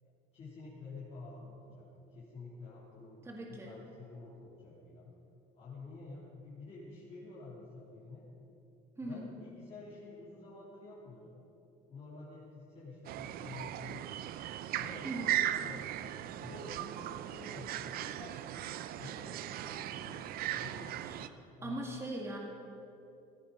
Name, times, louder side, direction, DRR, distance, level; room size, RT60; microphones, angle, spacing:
voice 1, 0.0-5.2 5.5-8.3 9.0-11.3 11.9-14.1 14.7-16.0 16.4-21.8, left 3 dB, 35° left, -8 dB, 3.3 m, -50 dB
voice 2, 3.2-3.7 9.0-9.3 15.0-15.4 21.0-22.4, right 1 dB, 15° right, -1 dB, 1.9 m, -41 dB
sound 1, 13.0-21.3, right 12 dB, 55° right, 0.6 m, -38 dB
15.5 x 15.0 x 5.3 m, 2.8 s
cardioid pair, 140°, 19 cm